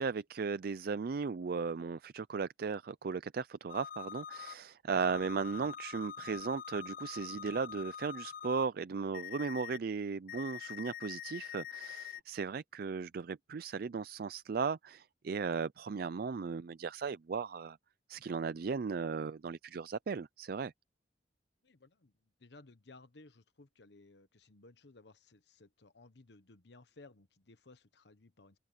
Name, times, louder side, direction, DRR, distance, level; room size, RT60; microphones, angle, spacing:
voice 1, 0.0-17.8 18.1-20.7, right 5 dB, 55° right, 0.4 m, -36 dB
sound 1, 3.7-4.5 5.0-8.6 9.1-9.8 10.3-12.2, left 9 dB, 50° left, 0.3 m, -45 dB
voice 2, 21.6-22.1 22.4-28.6, left 2 dB, 70° left, 1.1 m, -59 dB
open air
head